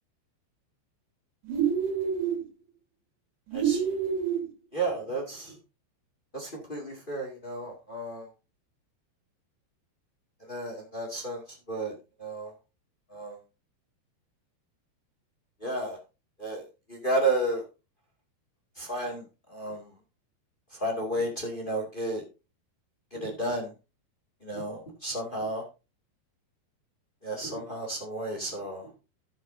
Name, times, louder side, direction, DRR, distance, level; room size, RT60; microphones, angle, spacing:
sound 1, 1.5-2.4 3.5-4.4, right 7 dB, 70° right, 4.3 m, -27 dB
voice 1, 3.5-3.9 4.7-5.6 6.3-8.3 10.4-12.5 13.1-13.4 15.6-16.0 16.4-17.6 18.7-19.9 20.7-22.2 23.1-23.7 24.4-25.6 27.2-28.9, right 2 dB, 55° left, 0 dB, 0.5 m, -32 dB
13.5 x 8.2 x 2.7 m, 0.29 s
omnidirectional pair, 5.3 m